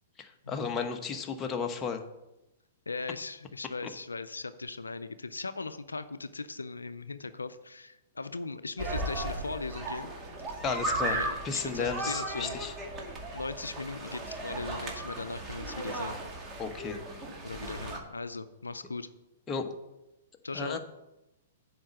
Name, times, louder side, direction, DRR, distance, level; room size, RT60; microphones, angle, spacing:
voice 1, 0.2-2.0 10.6-11.2 11.4-12.7 16.6-17.0 19.5-19.7 20.5-20.8, left 5 dB, 20° left, 4 dB, 1.1 m, -33 dB
voice 2, 2.9-10.1 11.0-12.6 13.3-16.2 17.4-19.1 20.4-20.8, left 3 dB, 90° left, 12 dB, 0.5 m, -38 dB
sound 1, 8.8-18.0, right 2 dB, 20° right, 2.1 m, -36 dB
7.8 x 5.1 x 7.5 m, 0.95 s
hypercardioid pair, 115°, 0 cm